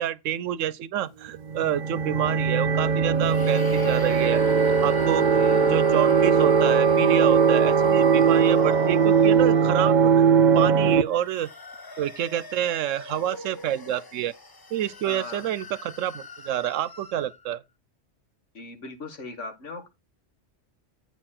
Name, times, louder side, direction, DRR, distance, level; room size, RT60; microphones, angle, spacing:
voice 1, 0.0-4.4 4.8-5.3 5.6-10.2 10.5-11.5 12.0-14.3 14.7-17.6, right 11 dB, 85° right, 1.0 m, -28 dB
sound 1, 1.4-11.0, right 6 dB, 50° right, 0.5 m, -20 dB
sound 2, 3.2-10.2 10.9-17.5, left 3 dB, 25° left, 0.5 m, -40 dB
voice 2, 5.2-5.6 15.1-15.4 18.5-19.9, left 3 dB, 75° left, 2.0 m, -39 dB
8.8 x 4.3 x 5.8 m
omnidirectional pair, 1.3 m